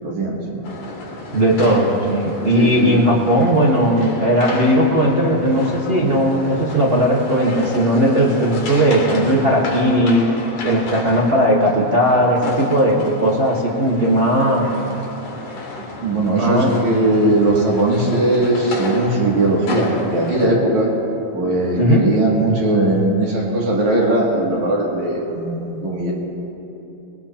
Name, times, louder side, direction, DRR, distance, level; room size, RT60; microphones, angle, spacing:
voice 1, 0.0-0.6 2.5-3.0 16.0-20.9 21.3-26.1, right 2 dB, 70° right, -4 dB, 3.9 m, -19 dB
sound 1, 0.6-20.5, left 2 dB, 90° left, 3.6 m, -32 dB
voice 2, 1.3-10.3 10.6-14.7 16.4-16.7 21.7-22.1, equal, 40° right, -3 dB, 0.9 m, -17 dB
21.5 x 21.0 x 2.9 m, 2.9 s
omnidirectional pair, 3.4 m